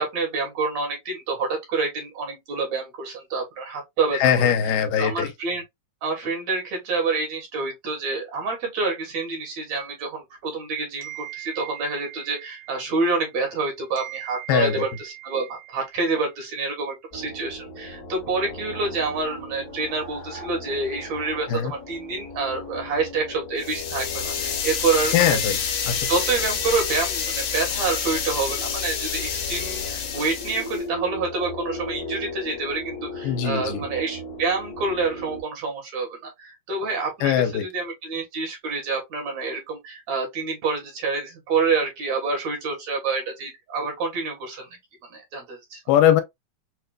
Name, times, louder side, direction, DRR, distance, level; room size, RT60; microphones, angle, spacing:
voice 1, 0.0-5.6 6.0-25.4 26.1-44.7 45.1-45.8, right 4 dB, 60° right, 2.4 m, -27 dB
voice 2, 4.1-5.3 14.5-14.7 21.5-21.7 25.1-25.6 25.9-26.1 33.2-33.8 37.2-37.7 45.9-46.2, left 9 dB, 90° left, 2.3 m, -21 dB
sound 1, 11.0-13.6 14.0-16.5, right 17 dB, 85° right, 3.1 m, -41 dB
sound 2, 17.1-35.4, left 2 dB, 55° left, 0.9 m, -37 dB
sound 3, 23.6-30.8, left 7 dB, 70° left, 1.5 m, -28 dB
6.2 x 2.2 x 2.4 m
omnidirectional pair, 3.9 m